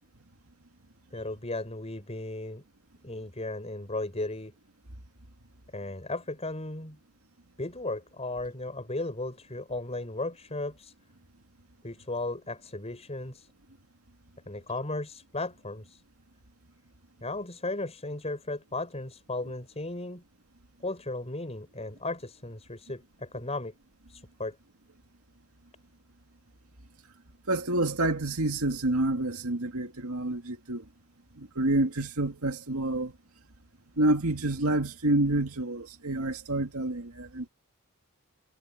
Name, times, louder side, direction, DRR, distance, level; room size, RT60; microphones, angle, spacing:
voice 1, 1.1-2.6 3.0-4.5 5.7-7.0 7.6-10.9 11.8-13.5 14.5-16.0 17.2-20.2 20.8-23.7 24.1-24.6, left 2 dB, 30° left, 6.0 m, -35 dB
voice 2, 27.5-30.8 31.4-33.1 34.0-37.5, right 2 dB, 75° right, 2.4 m, -28 dB
head